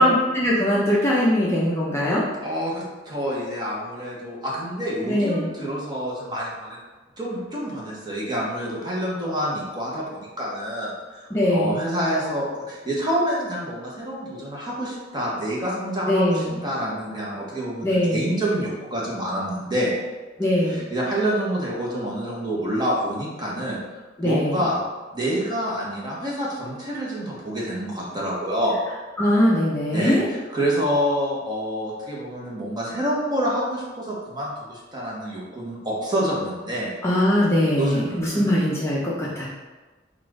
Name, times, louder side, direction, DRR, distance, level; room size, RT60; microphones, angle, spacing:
voice 1, 0.0-2.2 5.0-5.5 11.3-11.8 16.1-16.6 17.8-18.4 20.4-20.8 24.2-24.7 29.2-30.2 37.0-39.5, left 1 dB, 15° left, -6 dB, 0.6 m, -21 dB
voice 2, 2.4-6.8 7.2-19.9 20.7-23.8 24.2-24.8 25.1-28.8 29.9-30.2 30.5-36.9 37.8-38.5, equal, 25° right, -5 dB, 1.0 m, -27 dB
4.1 x 2.5 x 4.8 m, 1.3 s
head